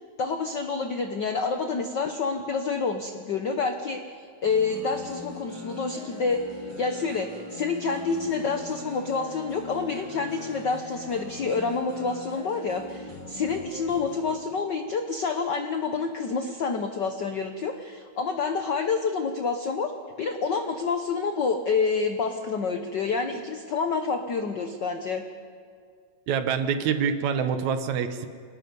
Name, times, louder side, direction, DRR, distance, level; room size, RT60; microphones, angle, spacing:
voice 1, 0.2-6.4 6.8-19.9 20.2-25.2, left 4 dB, 80° left, 6 dB, 0.9 m, -28 dB
sound 1, 4.4-14.3, left 2 dB, 5° right, 6.1 m, -41 dB
voice 2, 26.3-28.3, right 7 dB, 75° right, 9 dB, 2.3 m, -26 dB
27.5 x 19.0 x 5.3 m, 2.1 s
omnidirectional pair, 3.4 m